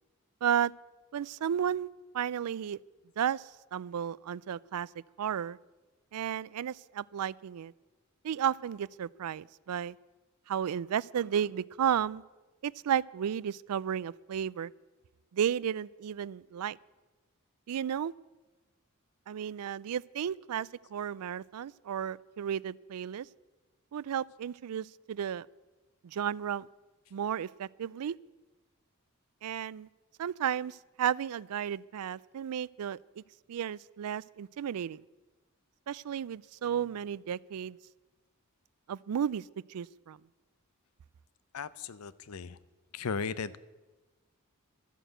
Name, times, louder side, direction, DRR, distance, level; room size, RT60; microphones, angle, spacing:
voice 1, 0.4-0.7 1.1-1.9 2.1-2.8 3.2-4.9 5.2-5.6 6.1-7.7 8.2-10.0 10.5-12.2 12.6-14.7 15.3-16.8 17.7-18.1 19.3-23.3 23.9-25.5 26.0-26.7 27.1-28.2 29.4-29.9 30.2-33.2 33.5-35.0 35.9-37.8 38.9-39.4 39.7-40.2, right 9 dB, 85° right, 23 dB, 0.4 m, -33 dB
voice 2, 41.5-42.6 42.9-43.6, left 5 dB, 80° left, 17 dB, 0.6 m, -36 dB
13.0 x 9.2 x 7.9 m, 1.2 s
head